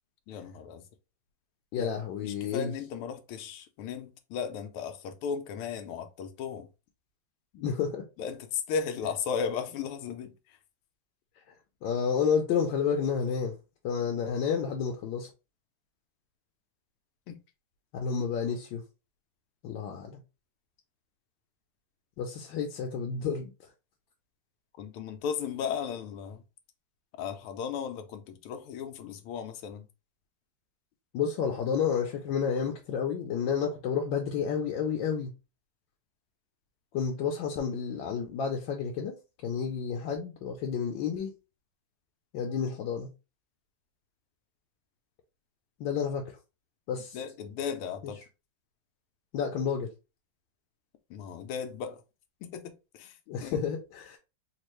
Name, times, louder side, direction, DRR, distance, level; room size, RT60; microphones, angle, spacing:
voice 1, 0.3-0.9 1.7-1.9 2.2-6.7 8.2-10.6 17.3-17.4 24.8-26.4 27.2-29.9 47.1-48.2 51.1-52.0 52.4-53.7, left 6 dB, 90° left, 1.5 m, -36 dB
voice 2, 1.7-2.7 7.5-8.0 11.5-11.6 11.8-13.6 13.8-15.3 17.9-18.8 19.6-20.2 22.2-23.5 31.1-35.3 36.9-39.1 39.4-41.3 42.3-43.1 45.8-46.4 46.9-47.2 48.0-48.1 49.3-49.9 53.3-54.2, left 6 dB, 70° left, 1.2 m, -30 dB
4.4 x 2.4 x 3.0 m
omnidirectional pair, 2.3 m